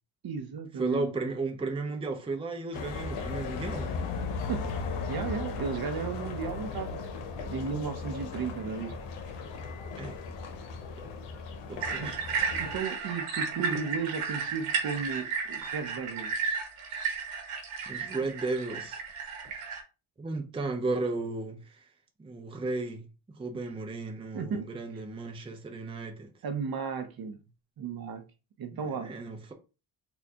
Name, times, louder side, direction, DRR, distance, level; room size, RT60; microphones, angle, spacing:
voice 1, 0.2-1.1 4.5-4.7 5.1-7.0 7.5-8.9 12.0-12.1 12.6-16.3 24.3-24.7 26.4-27.4 27.8-28.2 28.6-29.1, right 6 dB, 45° right, 0.7 m, -34 dB
voice 2, 0.8-4.1 10.0-10.2 11.7-12.2 17.9-19.0 20.2-21.9 22.2-23.1 23.3-26.3 28.8-29.5, right 3 dB, 10° right, 0.5 m, -34 dB
sound 1, 2.7-12.8, left 4 dB, 90° left, 0.8 m, -37 dB
sound 2, 11.8-19.8, right 5 dB, 85° right, 1.5 m, -33 dB
4.3 x 2.2 x 2.8 m
cardioid pair, 85°, 50 cm